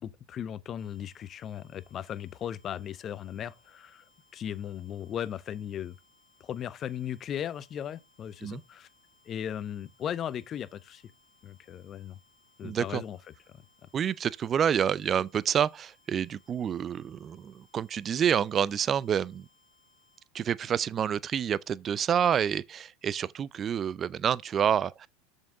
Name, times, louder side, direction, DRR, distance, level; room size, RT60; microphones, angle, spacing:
voice 1, 0.0-4.0 4.3-6.0 6.4-8.9 9.3-11.0 11.4-12.2 12.6-13.2, left 9 dB, 40° left, 0.6 m, -37 dB
sound 1, 0.8-20.3, left 3 dB, 10° left, 2.3 m, -66 dB
voice 2, 12.6-13.0 13.9-19.4 20.3-25.1, right 8 dB, 35° right, 0.4 m, -28 dB
7.0 x 5.4 x 3.7 m
hypercardioid pair, 90°, 0 cm